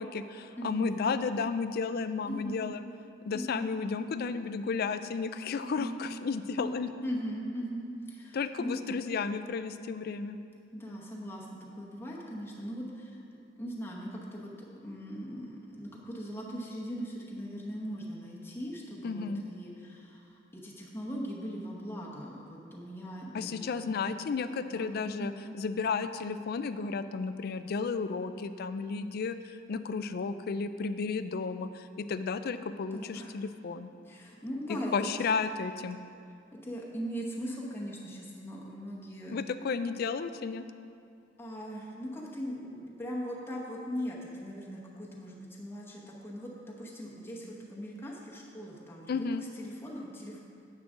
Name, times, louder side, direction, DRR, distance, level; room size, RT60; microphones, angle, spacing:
voice 1, 0.0-2.8 3.3-6.9 8.3-10.4 19.0-19.4 23.3-33.9 34.9-36.0 39.3-40.6 49.1-49.4, left 5 dB, 55° left, 11 dB, 0.4 m, -33 dB
voice 2, 0.6-0.9 2.3-2.7 3.3-3.7 5.6-5.9 6.6-9.0 10.7-13.2 13.6-14.5 14.8-23.7 24.1-24.4 24.7-25.4 32.9-33.3 34.0-34.9 35.2-35.3 36.6-39.3 41.4-50.4, equal, 15° left, -4 dB, 0.9 m, -40 dB
9.7 x 7.5 x 3.7 m, 2.4 s
head